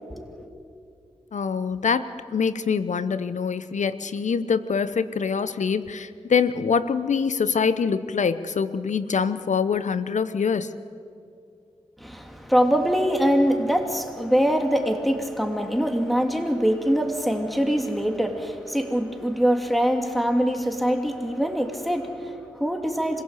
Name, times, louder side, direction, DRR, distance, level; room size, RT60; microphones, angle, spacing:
voice 1, 1.3-10.7, left 6 dB, 75° left, 14 dB, 0.9 m, -24 dB
voice 2, 12.0-23.2, equal, ahead, 5 dB, 3.0 m, -23 dB
25.5 x 16.5 x 8.4 m, 2.5 s
cardioid pair, 40°, 12 cm